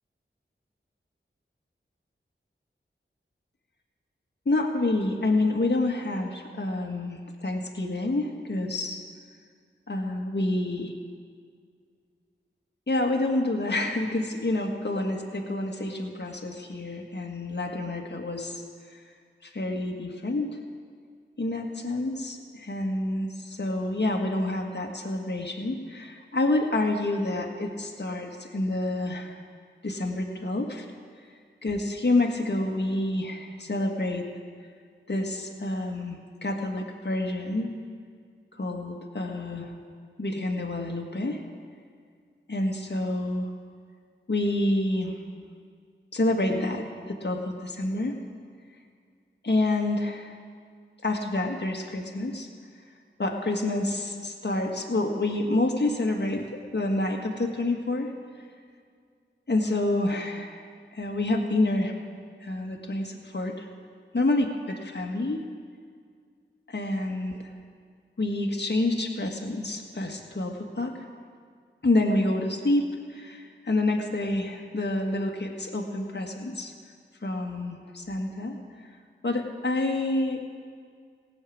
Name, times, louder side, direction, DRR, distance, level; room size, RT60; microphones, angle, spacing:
voice 1, 4.5-9.0 9.9-10.9 12.9-18.6 18.9-19.0 19.4-20.6 21.4-29.4 29.8-30.9 31.6-34.3 35.1-37.7 38.6-39.7 40.2-41.4 42.5-43.5 44.3-45.2 46.1-48.2 49.4-50.4 51.0-52.5 53.2-58.1 59.5-60.6 60.9-62.0 62.4-63.7 64.1-65.4 66.7-67.4 68.2-71.1 71.8-76.7 77.2-78.9 79.2-80.4, left 2 dB, 55° left, 1 dB, 1.7 m, -28 dB
17.0 x 6.6 x 8.6 m, 2.1 s
cardioid pair, 40°, 21 cm